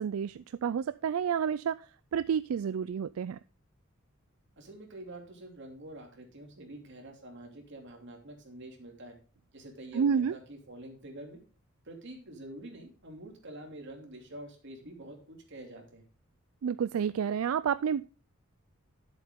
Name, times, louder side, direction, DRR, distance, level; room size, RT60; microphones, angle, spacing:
voice 1, 0.0-3.4 9.9-10.4 16.6-18.1, right 7 dB, 80° right, 0.4 m, -30 dB
voice 2, 4.6-9.2 9.5-11.4 11.8-16.0, right 1 dB, 60° right, 2.8 m, -47 dB
11.0 x 7.7 x 3.7 m
head